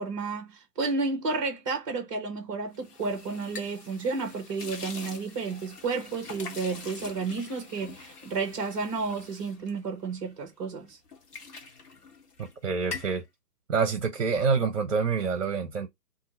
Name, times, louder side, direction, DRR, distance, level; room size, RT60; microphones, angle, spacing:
voice 1, 0.0-11.0, right 4 dB, 20° right, 0.8 m, -32 dB
sound 1, 2.7-10.5 10.9-12.5 12.8-13.2, left 4 dB, 75° left, 1.1 m, -44 dB
voice 2, 12.4-13.2 13.7-15.9, right 5 dB, 55° right, 0.7 m, -27 dB
2.8 x 2.5 x 4.2 m
figure-of-eight pair, 135°, 46 cm